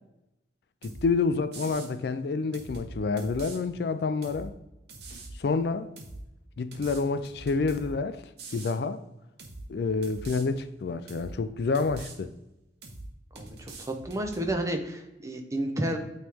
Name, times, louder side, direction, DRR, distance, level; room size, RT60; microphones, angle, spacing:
voice 1, 0.8-4.5 5.4-5.9 6.6-8.2 8.5-9.0 9.7-12.3, left 4 dB, 60° left, 11 dB, 0.3 m, -28 dB
sound 1, 0.8-1.1 1.5-1.9 2.5-3.6 4.2-4.5 4.9-5.4 6.0-6.2 6.7-7.9 8.4-8.8 9.4-9.7 10.0-10.4 11.1-11.4 11.7-12.2 12.8-13.1 13.4-14.5, right 2 dB, 60° right, 1.1 m, -43 dB
voice 2, 13.3-16.0, right 1 dB, 15° right, 4 dB, 0.7 m, -31 dB
8.8 x 3.2 x 3.5 m, 0.92 s
head